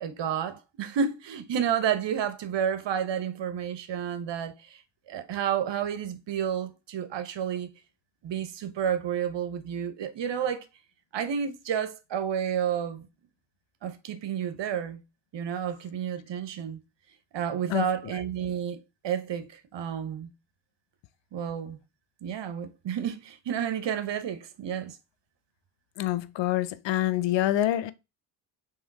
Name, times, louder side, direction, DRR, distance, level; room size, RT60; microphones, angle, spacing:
voice 1, 0.0-4.8 5.1-7.7 8.2-10.7 11.1-13.1 13.8-15.0 15.3-16.8 17.3-20.3 21.3-21.8 22.2-25.0, right 8 dB, 60° right, 0.9 m, -30 dB
voice 2, 26.0-27.9, left 13 dB, 65° left, 0.6 m, -26 dB
3.5 x 3.1 x 4.6 m
supercardioid pair, 60°, 49 cm